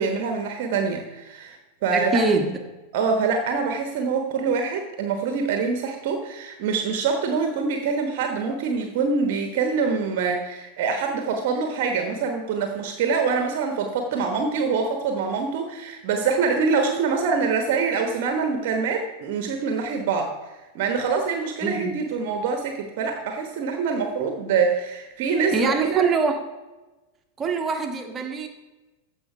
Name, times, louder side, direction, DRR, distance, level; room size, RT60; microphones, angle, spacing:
voice 1, 0.0-1.6 1.8-2.2 2.9-26.0, right 5 dB, 50° right, 5 dB, 1.1 m, -25 dB
voice 2, 1.9-2.6 21.6-22.0 25.5-26.4 27.4-28.5, right 4 dB, 20° right, 4 dB, 1.4 m, -24 dB
14.5 x 5.2 x 4.9 m, 1.1 s
figure-of-eight pair, 90°, 0 cm